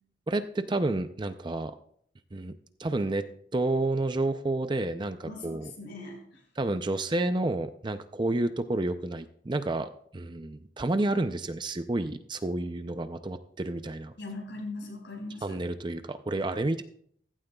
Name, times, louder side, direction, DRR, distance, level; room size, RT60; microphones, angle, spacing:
voice 1, 0.3-1.7 2.3-2.5 2.8-3.2 3.5-5.7 6.6-14.1 15.4-16.8, right 2 dB, 25° right, 9 dB, 0.5 m, -30 dB
voice 2, 5.2-6.2 14.2-15.6, left 2 dB, 65° left, 0 dB, 5.4 m, -40 dB
15.5 x 15.5 x 2.3 m, 0.64 s
head